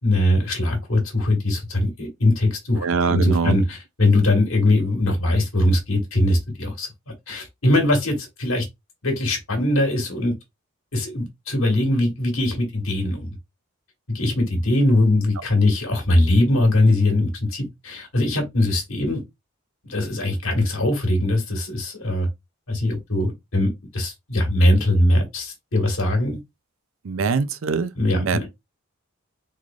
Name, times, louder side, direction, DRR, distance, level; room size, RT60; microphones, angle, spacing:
voice 1, 0.0-6.9 7.3-8.6 9.0-10.3 10.9-13.3 14.1-19.2 19.8-22.3 22.7-26.4 28.0-28.5, left 1 dB, 70° left, 1.6 m, -21 dB
voice 2, 2.8-3.6 27.0-28.4, right 5 dB, 65° right, 0.5 m, -23 dB
3.8 x 3.2 x 2.3 m
head